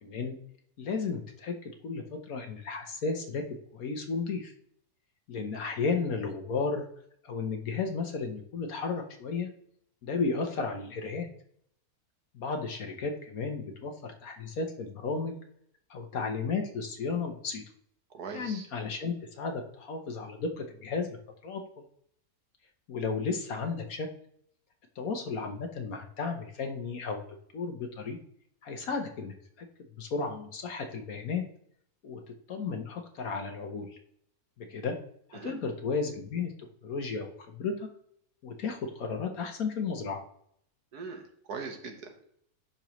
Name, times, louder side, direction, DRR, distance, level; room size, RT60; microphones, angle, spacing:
voice 1, 0.0-0.4 0.8-3.4 3.7-4.5 5.3-6.9 7.2-9.5 10.0-11.3 12.3-15.3 15.9-17.6 18.3-21.2 21.4-21.6 22.9-24.1 25.0-27.2 27.5-28.2 28.6-29.7 30.0-31.4 32.0-32.2 32.5-34.0 34.6-35.0 35.3-36.5 36.8-37.9 38.4-40.2, left 4 dB, 65° left, 4 dB, 1.4 m, -33 dB
voice 2, 18.1-18.7 35.3-35.6 40.9-42.1, right 5 dB, 85° right, 5 dB, 1.7 m, -41 dB
10.5 x 5.6 x 3.0 m, 0.68 s
omnidirectional pair, 1.6 m